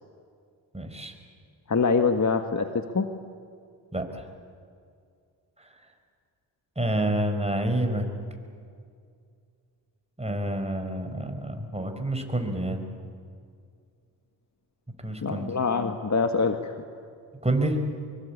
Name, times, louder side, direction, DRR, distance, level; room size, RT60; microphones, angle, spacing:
voice 1, 0.7-1.1 3.9-4.3 5.6-5.7 6.8-8.1 10.2-12.8 15.0-15.5 17.4-17.8, right 1 dB, 15° right, 6 dB, 4.5 m, -28 dB
voice 2, 1.7-3.1 15.2-16.7, left 4 dB, 35° left, 7 dB, 1.5 m, -24 dB
23.5 x 23.5 x 8.5 m, 2.3 s
supercardioid pair, 50°, 49 cm